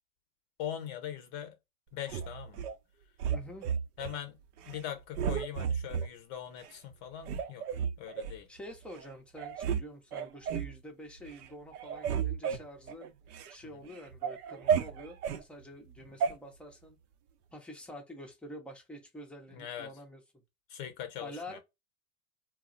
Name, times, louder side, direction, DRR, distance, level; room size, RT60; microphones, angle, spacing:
voice 1, 0.6-1.6 1.9-2.6 4.0-4.4 4.7-7.6 8.0-8.5 13.7-13.8 19.5-19.9 20.7-21.6, left 10 dB, 45° left, 0.6 m, -41 dB
sound 1, 2.1-2.7 3.2-4.2 4.6-4.8 5.1-6.1 6.6-6.7 7.2-8.4 9.0-9.1 9.4-9.8 10.1-10.7 11.2-11.5 11.7-13.5 13.9-15.4 16.2-16.3, right 7 dB, 75° right, 0.6 m, -33 dB
voice 2, 3.3-3.7 8.5-13.1 13.5-17.0 17.5-20.2 21.2-21.6, equal, 5° left, 0.5 m, -47 dB
2.2 x 2.0 x 3.7 m
hypercardioid pair, 115°, 45 cm